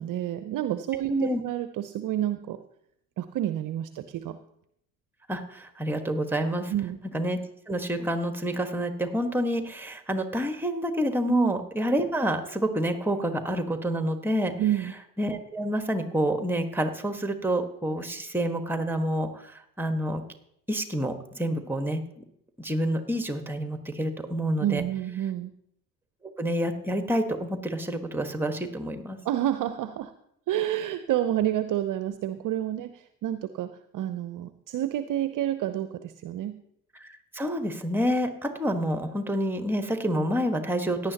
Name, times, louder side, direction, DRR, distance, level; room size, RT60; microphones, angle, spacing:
voice 1, 0.0-2.6 3.2-4.4 6.7-7.0 11.3-11.5 14.6-14.9 24.6-25.5 29.2-30.1 30.5-36.6, right 12 dB, 40° right, 11 dB, 0.7 m, -29 dB
voice 2, 1.1-1.4 5.3-6.7 7.1-7.4 7.7-14.5 15.2-20.2 20.7-22.2 22.6-24.8 26.4-29.2 37.0-41.1, equal, 5° right, 7 dB, 1.5 m, -28 dB
17.0 x 10.0 x 2.9 m, 0.74 s
hypercardioid pair, 65°, 49 cm